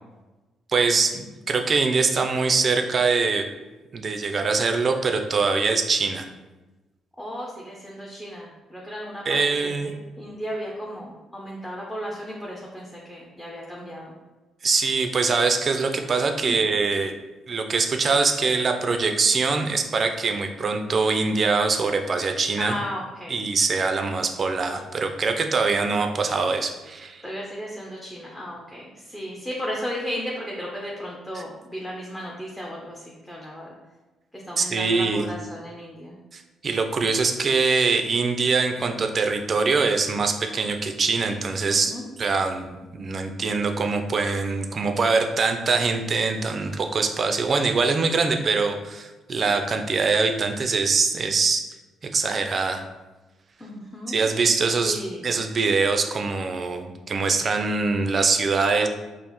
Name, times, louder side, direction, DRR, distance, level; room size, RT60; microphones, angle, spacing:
voice 1, 0.7-3.5 3.9-6.3 9.3-9.9 14.6-17.1 17.5-22.7 23.3-27.2 34.6-35.3 36.3-41.9 42.2-51.6 52.0-52.8 54.1-58.9, right 4 dB, 45° right, 5 dB, 0.4 m, -23 dB
voice 2, 7.2-9.2 9.6-9.7 10.2-14.1 16.5-16.6 22.6-23.5 27.2-33.7 34.3-36.1 41.7-42.1 53.6-54.2 54.8-55.3, equal, 10° left, -3 dB, 0.6 m, -35 dB
5.3 x 2.0 x 3.0 m, 1.1 s
cardioid pair, 90°, 0 cm